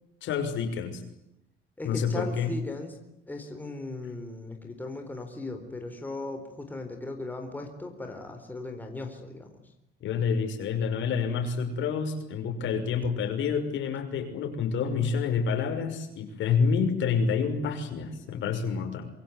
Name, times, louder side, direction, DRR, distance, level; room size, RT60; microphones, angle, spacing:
voice 1, 0.2-1.0 1.8-2.5 10.0-19.1, left 6 dB, 75° left, 6 dB, 6.1 m, -28 dB
voice 2, 1.8-3.0 3.3-9.6, left 2 dB, 10° left, 4 dB, 4.1 m, -37 dB
26.5 x 23.0 x 9.5 m, 0.81 s
cardioid pair, 170°, 20 cm